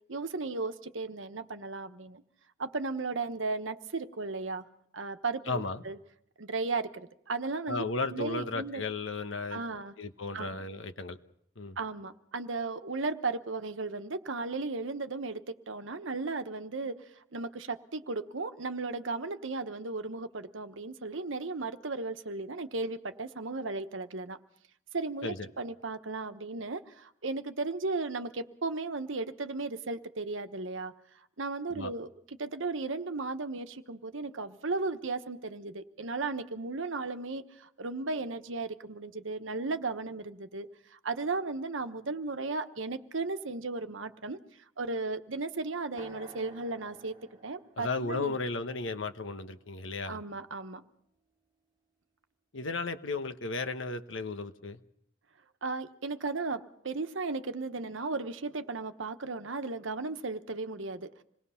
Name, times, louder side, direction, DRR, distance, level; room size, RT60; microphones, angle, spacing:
voice 1, 0.1-2.2 2.6-4.6 4.9-6.0 6.4-7.8 8.1-8.8 9.5-9.9 10.3-10.6 11.8-17.0 17.3-24.4 24.9-30.9 31.4-32.1 32.4-44.4 44.8-47.1 47.4-48.4 50.1-50.8 55.6-61.2, right 3 dB, 85° right, 9 dB, 1.1 m, -35 dB
voice 2, 5.5-5.8 7.7-9.6 10.0-11.2 11.6-11.8 25.2-25.5 31.7-31.9 47.8-50.2 52.5-54.8, left 3 dB, 85° left, 9 dB, 1.2 m, -34 dB
sound 1, 46.0-49.9, right 1 dB, 25° right, 2.5 m, -54 dB
26.5 x 19.5 x 5.7 m, 0.72 s
head